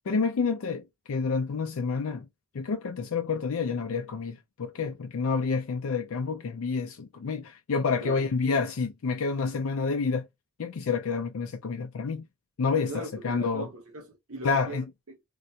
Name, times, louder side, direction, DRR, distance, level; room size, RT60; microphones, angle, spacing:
voice 1, 0.1-2.3 2.5-10.3 10.6-12.3 12.6-13.7 14.4-14.8, left 5 dB, 70° left, 0.4 m, -29 dB
voice 2, 8.0-8.6 12.9-15.2, right 2 dB, 75° right, 1.0 m, -41 dB
3.7 x 2.2 x 2.7 m
head